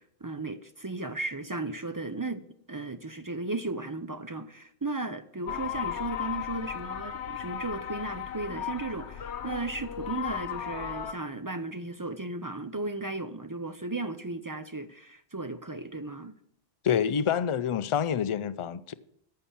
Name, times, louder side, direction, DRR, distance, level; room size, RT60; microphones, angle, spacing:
voice 1, 0.0-2.4 2.7-16.3, right 2 dB, 30° right, 0.4 m, -35 dB
sound 1, 5.5-11.1, left 9 dB, 80° left, 1.1 m, -36 dB
voice 2, 16.8-18.9, left 8 dB, 50° left, 0.3 m, -27 dB
14.0 x 5.7 x 7.2 m
omnidirectional pair, 1.2 m